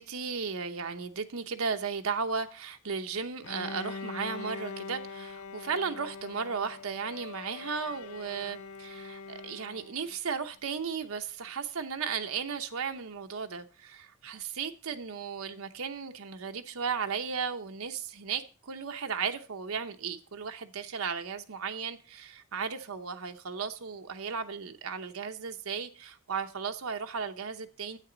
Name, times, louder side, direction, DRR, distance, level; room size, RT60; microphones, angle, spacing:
voice 1, 0.0-28.0, right 6 dB, 75° right, 0.8 m, -35 dB
Bowed string instrument, 3.4-10.2, left 4 dB, 75° left, 0.4 m, -43 dB
10.0 x 8.2 x 3.9 m
head